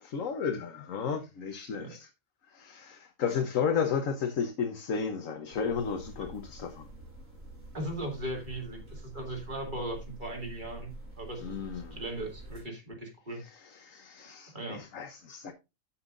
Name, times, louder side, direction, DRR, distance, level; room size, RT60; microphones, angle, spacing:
voice 1, 0.0-2.1 2.5-6.9 11.4-12.0 13.4-15.5, left 6 dB, 85° left, 1.4 m, -33 dB
sound 1, 5.5-12.6, right 1 dB, 85° right, 6.3 m, -47 dB
voice 2, 7.7-13.4 14.5-14.8, right 1 dB, 35° right, 3.0 m, -38 dB
14.5 x 5.8 x 2.5 m
omnidirectional pair, 1.3 m